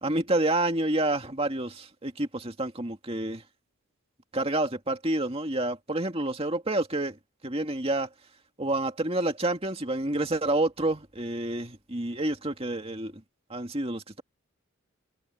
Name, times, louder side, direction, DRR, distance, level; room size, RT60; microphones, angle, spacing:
voice 1, 0.0-3.4 4.3-8.1 8.6-13.2 13.5-14.2, right 2 dB, 25° right, 2.2 m, -29 dB
head